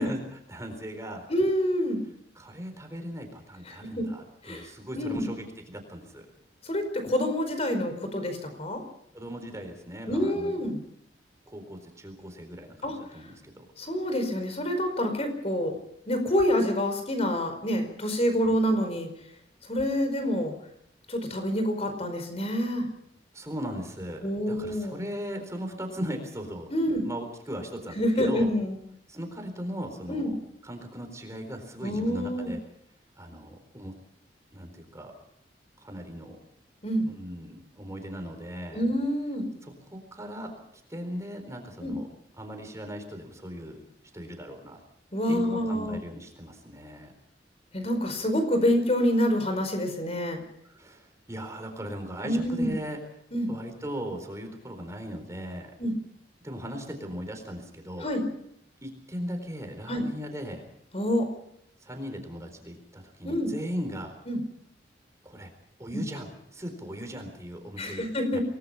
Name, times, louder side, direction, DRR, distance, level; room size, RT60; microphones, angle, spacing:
voice 1, 0.0-1.3 2.4-6.3 9.1-10.5 11.5-13.6 23.3-26.7 27.0-28.5 29.1-30.4 30.6-32.6 33.2-34.0 34.5-35.1 35.8-36.4 37.1-38.8 39.6-40.5 40.9-42.1 42.4-43.8 44.1-44.8 45.3-47.1 50.7-53.0 53.5-55.7 56.4-58.1 58.8-60.6 61.8-64.1 65.2-65.5 65.8-68.1 68.3-68.4, equal, 15° right, 4 dB, 4.1 m, -38 dB
voice 2, 1.3-2.0 3.7-4.1 4.4-4.7 4.9-5.3 6.6-8.8 10.1-10.8 12.8-13.0 13.8-15.8 16.1-19.1 19.7-20.5 21.1-22.9 24.2-25.0 26.7-27.1 27.9-28.8 30.1-30.3 31.8-32.5 36.8-37.1 38.7-39.5 41.8-42.0 45.1-46.0 47.7-50.4 52.2-52.7 53.3-53.5 55.8-56.0 58.0-58.2 59.9-60.0 60.9-61.3 63.2-63.5 64.3-64.4 65.9-66.1 67.8-68.4, equal, 35° left, 7 dB, 5.0 m, -27 dB
27.0 x 19.5 x 5.8 m, 0.69 s
head